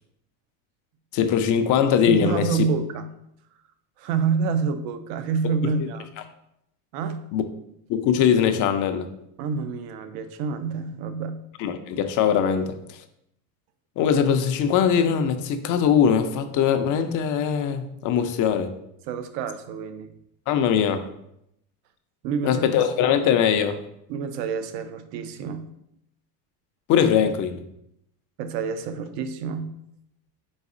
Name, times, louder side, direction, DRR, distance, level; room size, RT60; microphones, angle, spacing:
voice 1, 1.1-2.5 7.3-7.4 7.9-9.1 11.6-13.0 14.0-18.7 20.5-21.1 22.4-23.8 26.9-27.6, left 8 dB, 45° left, 9 dB, 0.5 m, -21 dB
voice 2, 2.1-3.1 4.0-6.3 6.9-7.3 9.4-11.5 19.1-20.1 22.2-22.9 24.1-25.7 28.4-29.8, right 5 dB, 70° right, 10 dB, 0.6 m, -28 dB
4.0 x 4.0 x 2.5 m, 0.78 s
supercardioid pair, 105°, 47 cm